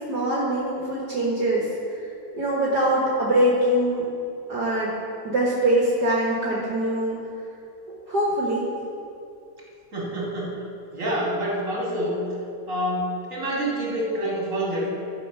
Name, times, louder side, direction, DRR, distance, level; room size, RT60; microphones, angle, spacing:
voice 1, 0.1-1.7 2.3-4.1 4.5-4.9 5.2-7.2 8.1-8.6, right 1 dB, 70° right, -5 dB, 2.0 m, -23 dB
voice 2, 9.9-10.6 10.9-12.2 12.7-14.9, equal, 50° right, -4 dB, 2.7 m, -27 dB
12.0 x 6.7 x 5.4 m, 2.6 s
omnidirectional pair, 1.8 m